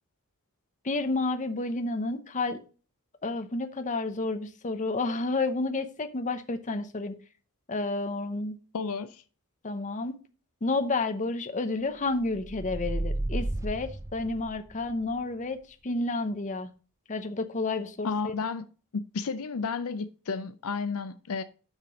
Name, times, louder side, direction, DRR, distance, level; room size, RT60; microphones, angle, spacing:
voice 1, 0.8-2.6 3.2-7.1 7.7-8.6 9.6-10.2 10.6-16.7 17.1-18.3, left 3 dB, 35° left, 0.8 m, -30 dB
voice 2, 8.7-9.2 18.0-18.7 19.1-21.4, left 5 dB, 70° left, 0.5 m, -32 dB
sound 1, 12.3-14.9, right 1 dB, 15° right, 0.5 m, -33 dB
7.1 x 5.9 x 5.0 m
head